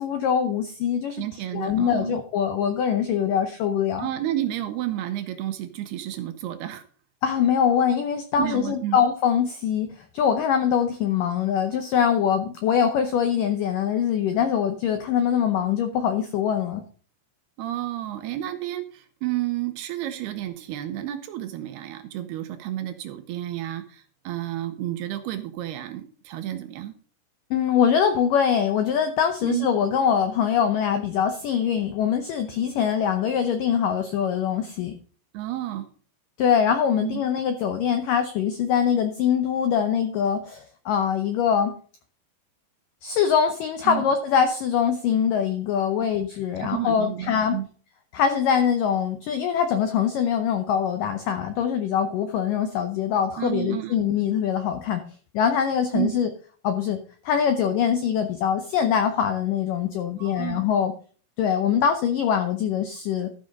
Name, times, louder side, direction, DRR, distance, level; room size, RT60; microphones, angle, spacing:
voice 1, 0.0-1.2 1.5-4.1 7.2-16.8 27.5-34.9 36.4-41.8 43.0-47.6 48.1-55.0 55.3-56.3 56.6-57.0 57.3-60.9 61.4-63.3, left 8 dB, 90° left, 7 dB, 1.9 m, -23 dB
voice 2, 1.1-2.1 4.0-6.8 8.4-9.0 17.6-27.0 29.4-29.7 35.3-35.9 37.0-37.3 43.9-44.1 46.6-47.7 53.4-53.9 55.9-56.2 60.2-60.6, right 14 dB, 75° right, 8 dB, 2.6 m, -31 dB
13.0 x 6.3 x 5.2 m, 0.42 s
omnidirectional pair, 5.1 m